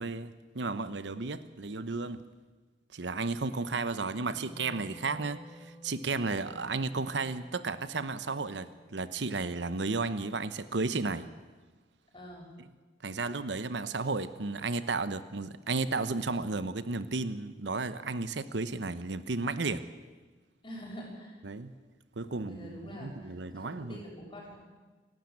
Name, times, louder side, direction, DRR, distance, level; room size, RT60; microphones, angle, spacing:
voice 1, 0.0-2.2 2.9-11.3 13.0-19.8 21.4-21.7 22.2-24.0, right 3 dB, 80° right, 13 dB, 0.9 m, -33 dB
Wind instrument woodwind instrument, 4.1-10.3, equal, 5° right, 5.9 m, -54 dB
voice 2, 12.1-12.5 20.6-21.4 22.1-24.6, equal, 30° left, -2 dB, 7.1 m, -46 dB
28.0 x 12.5 x 8.6 m, 1.3 s
head